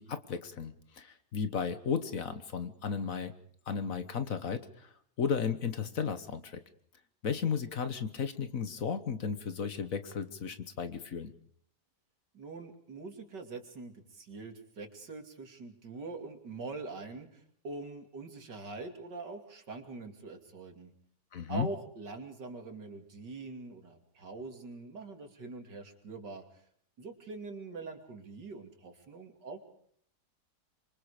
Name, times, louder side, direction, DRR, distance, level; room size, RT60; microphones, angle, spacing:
voice 1, 0.0-3.3 3.7-4.9 5.2-6.6 7.2-11.3 21.3-21.7, left 6 dB, 55° left, 11 dB, 1.6 m, -34 dB
voice 2, 12.3-20.9 21.5-26.4 27.0-29.6, right 3 dB, 90° right, 5 dB, 3.3 m, -44 dB
26.0 x 23.5 x 5.0 m, 0.63 s
omnidirectional pair, 1.8 m